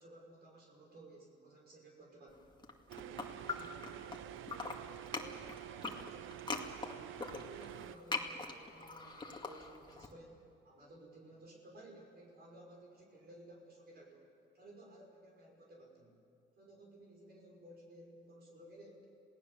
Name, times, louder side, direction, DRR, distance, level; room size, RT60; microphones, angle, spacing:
voice 1, 0.0-2.5 2.9-7.0 7.3-16.2 16.6-19.1, right 1 dB, 55° right, -1 dB, 5.7 m, -57 dB
sound 1, 2.5-4.2 4.4-10.1, left 3 dB, 20° left, 2.1 m, -42 dB
sound 2, 2.9-8.0, right 14 dB, 85° right, 0.7 m, -48 dB
27.5 x 17.5 x 7.0 m, 2.7 s
cardioid pair, 90°, 20 cm